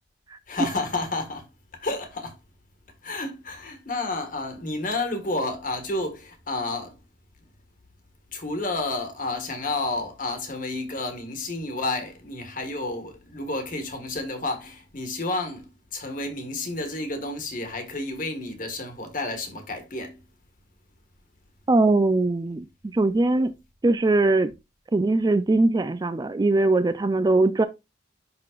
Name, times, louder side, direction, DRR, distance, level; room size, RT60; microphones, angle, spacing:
voice 1, 0.5-2.4 3.0-7.0 8.3-20.2, left 2 dB, 45° left, 1.5 m, -31 dB
voice 2, 21.7-22.6 22.9-23.5 23.8-24.5 24.9-27.7, right 2 dB, 20° right, 0.3 m, -21 dB
11.0 x 3.8 x 2.4 m
head